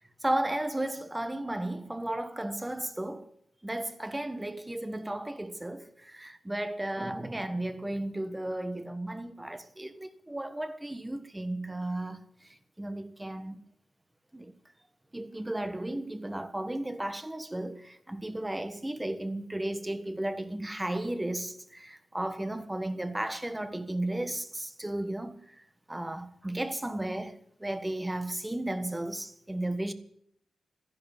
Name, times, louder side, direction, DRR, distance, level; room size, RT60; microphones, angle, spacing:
voice 1, 0.2-3.3 3.6-13.6 14.3-14.5 15.1-25.6 25.9-29.9, right 1 dB, 10° right, 1.4 m, -34 dB
13.5 x 11.0 x 9.0 m
wide cardioid pair, 105°, 0 cm